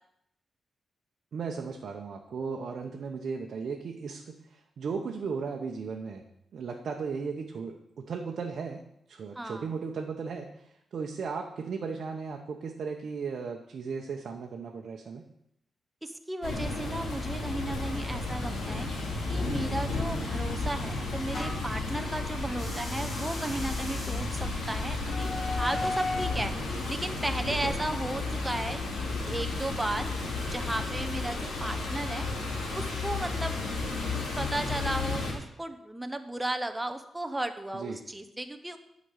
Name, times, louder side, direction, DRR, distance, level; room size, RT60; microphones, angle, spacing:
voice 1, 1.3-6.3 6.5-8.8 9.1-15.2 27.6-27.8 37.7-38.0, right 5 dB, 50° right, 2 dB, 0.8 m, -36 dB
voice 2, 9.4-9.7 16.0-18.9 19.3-24.4 24.7-26.5 26.9-28.8 29.2-30.1 30.4-32.3 32.7-33.6 34.1-38.8, right 1 dB, 10° right, 7 dB, 0.7 m, -35 dB
sound 1, 16.4-35.3, left 3 dB, 90° left, 2.9 m, -33 dB
sound 2, 20.0-21.8 22.5-26.5, left 2 dB, 30° left, 2.2 m, -38 dB
9.7 x 5.1 x 8.1 m, 0.77 s
wide cardioid pair, 175°, 0 cm